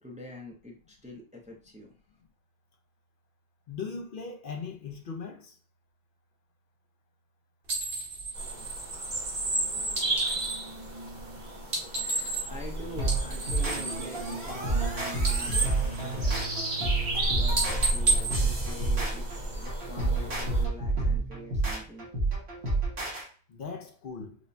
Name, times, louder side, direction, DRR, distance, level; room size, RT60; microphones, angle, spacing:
voice 1, 0.0-1.9 12.0-15.6 15.9-16.5 16.8-16.9 17.3-22.1, left 2 dB, 10° right, 0.5 m, -45 dB
voice 2, 3.7-5.6 23.5-24.4, left 5 dB, 60° left, 0.7 m, -39 dB
sound 1, 7.7-10.7 11.6-12.7 13.0-14.9 15.1-16.7 17.0-17.2 17.5-19.4, right 3 dB, 65° right, 1.4 m, -32 dB
sound 2, 8.4-20.6, right 1 dB, 45° right, 1.0 m, -33 dB
sound 3, 13.0-23.2, right 3 dB, 85° right, 1.5 m, -30 dB
4.8 x 2.1 x 2.6 m
omnidirectional pair, 1.0 m